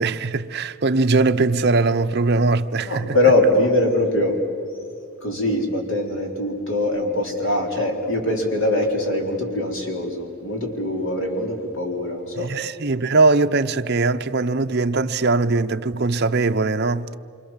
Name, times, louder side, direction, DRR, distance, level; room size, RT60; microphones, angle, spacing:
voice 1, 0.0-3.2 12.4-17.1, right 3 dB, 50° right, 0.7 m, -20 dB
voice 2, 2.8-4.4 5.2-12.5, left 1 dB, 60° left, 4.1 m, -22 dB
27.5 x 26.0 x 7.4 m
head